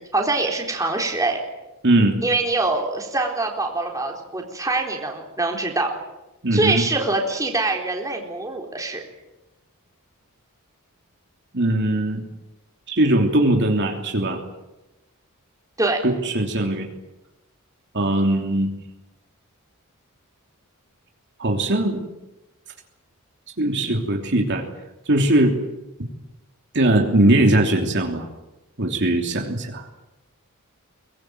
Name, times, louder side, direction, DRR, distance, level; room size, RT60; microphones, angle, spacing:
voice 1, 0.0-1.4 2.2-5.9 6.5-9.0 15.8-16.0, right 2 dB, 15° right, 1 dB, 4.0 m, -24 dB
voice 2, 1.8-2.2 6.4-6.8 11.5-12.2 12.9-14.4 16.0-16.9 17.9-18.7 21.4-22.1 23.6-24.6 25.1-25.6 26.7-28.3 28.8-29.9, right 1 dB, 55° right, 2 dB, 3.1 m, -20 dB
23.0 x 20.0 x 9.3 m, 1.0 s
head